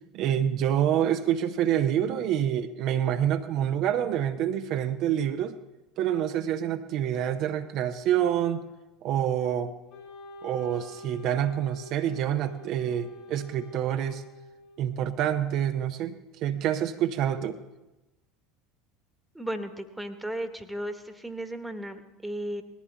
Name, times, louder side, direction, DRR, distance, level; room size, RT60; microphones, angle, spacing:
voice 1, 0.1-5.6 6.0-8.6 9.0-9.7 10.4-14.2 14.8-17.6, right 10 dB, 50° right, 7 dB, 0.7 m, -27 dB
Wind instrument woodwind instrument, 9.9-15.0, left 1 dB, 50° left, 4.5 m, -47 dB
voice 2, 19.3-22.6, right 1 dB, 5° right, 8 dB, 1.4 m, -35 dB
19.5 x 14.5 x 3.4 m, 1.0 s
figure-of-eight pair, 70°, 0 cm